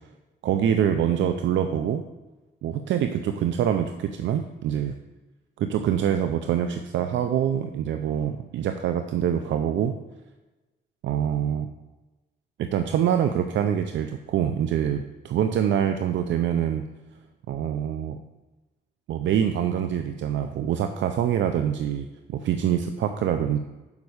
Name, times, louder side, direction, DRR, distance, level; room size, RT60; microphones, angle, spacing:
voice 1, 0.4-2.0 2.6-5.0 5.6-10.0 11.0-11.7 12.6-16.9 17.5-18.2 19.1-23.6, right 9 dB, 70° right, 7 dB, 0.5 m, -25 dB
7.2 x 5.3 x 6.4 m, 1.1 s
cardioid pair, 90°, 20 cm